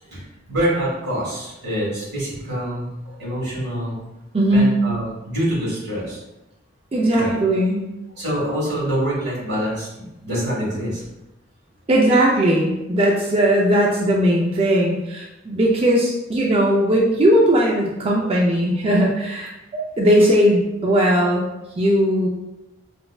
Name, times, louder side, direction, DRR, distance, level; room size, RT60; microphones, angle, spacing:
voice 1, 0.1-4.0 4.5-6.2 7.1-7.4 8.1-11.0 18.2-18.3, equal, 60° right, -6 dB, 1.5 m, -26 dB
voice 2, 4.3-4.8 6.9-7.9 11.9-21.4 21.8-22.3, right 1 dB, 30° right, -2 dB, 0.4 m, -18 dB
5.1 x 2.1 x 2.3 m, 0.94 s
head